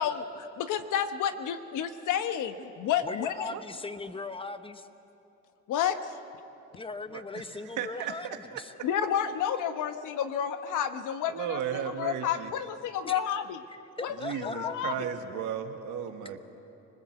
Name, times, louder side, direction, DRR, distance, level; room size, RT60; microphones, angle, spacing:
voice 1, 0.0-3.5 5.7-6.1 8.8-13.6 14.0-14.9, left 9 dB, 85° left, 9 dB, 1.2 m, -30 dB
voice 2, 3.0-4.9 6.7-8.7 13.0-13.2 13.7-14.8, left 3 dB, 20° left, 10 dB, 1.1 m, -39 dB
voice 3, 7.1-7.4 7.8-8.2 8.5-8.6 11.3-12.5 14.2-16.4, right 8 dB, 90° right, 6 dB, 1.7 m, -35 dB
25.5 x 20.0 x 8.0 m, 2.9 s
cardioid pair, 90°, 30 cm